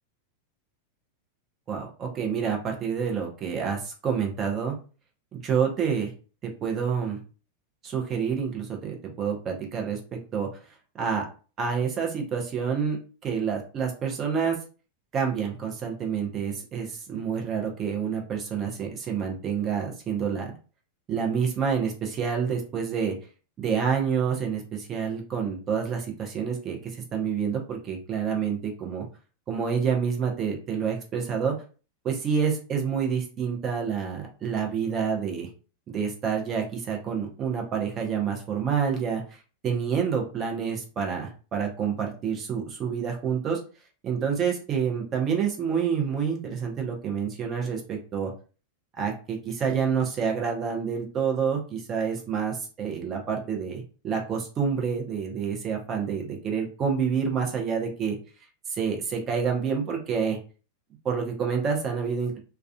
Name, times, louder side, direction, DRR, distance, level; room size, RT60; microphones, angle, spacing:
voice 1, 1.7-4.7 5.3-6.1 6.4-7.2 7.8-10.5 11.0-11.3 11.6-13.0 13.2-14.6 15.1-20.5 21.1-23.1 23.6-29.0 29.5-31.6 32.0-35.5 35.9-39.2 39.6-43.6 44.0-48.3 49.0-58.2 58.7-60.4 61.0-62.4, right 6 dB, 30° right, 1 dB, 0.6 m, -28 dB
2.3 x 2.3 x 2.3 m, 0.36 s
figure-of-eight pair, 90°, 0 cm